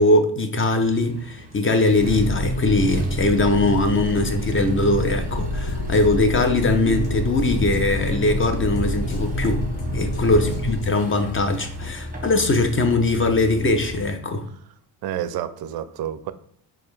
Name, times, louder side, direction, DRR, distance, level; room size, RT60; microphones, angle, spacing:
voice 1, 0.0-9.6 9.9-14.5, left 2 dB, 25° left, 0.6 m, -21 dB
Accelerating revving vroom, 0.8-14.1, equal, 15° right, 1.1 m, -36 dB
sound 1, 1.9-10.8, equal, 45° left, 1.5 m, -28 dB
Drum kit, 5.7-11.2, left 3 dB, 70° left, 1.0 m, -36 dB
voice 2, 15.0-16.3, right 10 dB, 50° right, 0.5 m, -30 dB
4.2 x 2.4 x 3.3 m
supercardioid pair, 70°, 50 cm